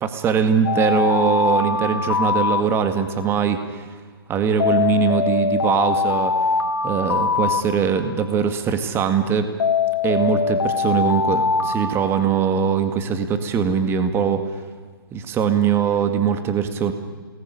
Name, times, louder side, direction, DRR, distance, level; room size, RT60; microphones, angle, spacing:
voice 1, 0.0-3.9 4.3-6.3 6.8-9.5 10.0-14.4 15.1-16.9, right 7 dB, 20° right, 8 dB, 2.1 m, -21 dB
Alarm, 0.6-3.3 4.6-8.3 9.6-12.8, left 5 dB, 70° left, 3.0 m, -23 dB
28.0 x 20.0 x 9.9 m, 1.5 s
hypercardioid pair, 135°, 13 cm